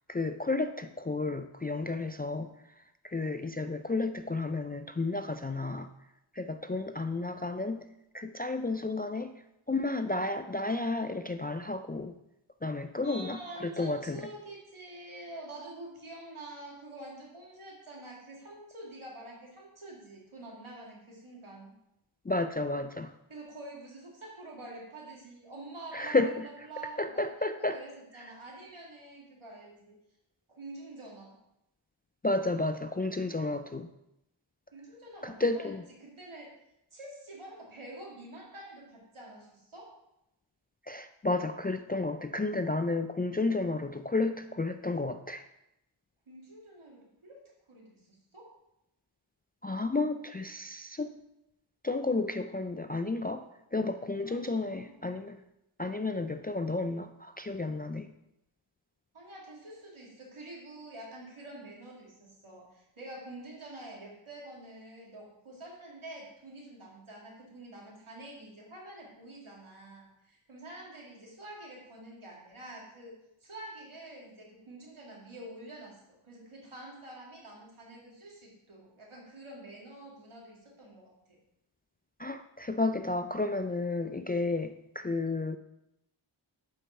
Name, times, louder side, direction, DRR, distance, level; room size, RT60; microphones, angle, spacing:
voice 1, 0.1-2.5 2.8-5.9 6.3-7.9 8.1-9.3 9.7-12.1 12.6-14.2 22.2-23.1 25.9-26.5 27.0-27.8 28.1-28.3 32.2-33.9 35.2-35.8 40.9-45.4 49.6-51.2 51.8-53.4 53.7-55.4 55.8-58.1 82.2-85.6, left 3 dB, 20° left, 8 dB, 0.3 m, -32 dB
voice 2, 13.0-21.7 23.3-29.9 30.5-31.3 34.7-35.7 36.0-36.5 36.9-39.9 46.3-47.4 47.7-48.5 54.3-55.0 59.1-81.1, right 2 dB, 70° right, -3 dB, 2.3 m, -47 dB
7.9 x 5.2 x 4.4 m, 0.85 s
wide cardioid pair, 40°, 50 cm